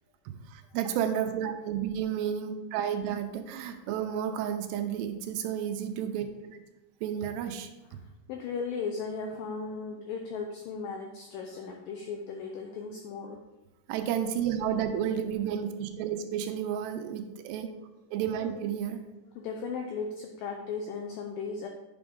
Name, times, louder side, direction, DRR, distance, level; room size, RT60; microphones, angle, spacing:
voice 1, 0.3-6.6 7.0-8.0 13.9-17.7 18.1-19.0, right 9 dB, 85° right, 7 dB, 2.8 m, -32 dB
voice 2, 8.0-13.4 19.4-21.7, left 5 dB, 90° left, 3 dB, 2.0 m, -36 dB
9.2 x 6.0 x 3.7 m, 1.1 s
omnidirectional pair, 4.8 m